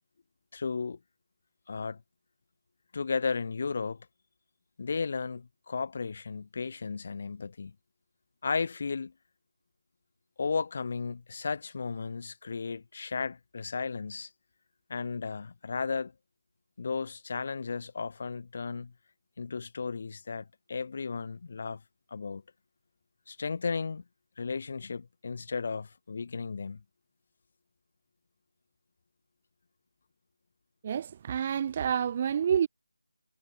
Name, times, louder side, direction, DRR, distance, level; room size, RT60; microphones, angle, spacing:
voice 1, 0.5-1.0 1.7-2.0 2.9-4.0 4.8-7.7 8.4-9.1 10.4-14.3 14.9-16.1 16.8-18.9 19.4-21.8 22.1-22.4 23.3-24.0 24.4-26.8, left 5 dB, 40° left, 5.8 m, -34 dB
voice 2, 30.8-32.7, right 8 dB, 25° right, 1.2 m, -28 dB
figure-of-eight pair, 165°, 0 cm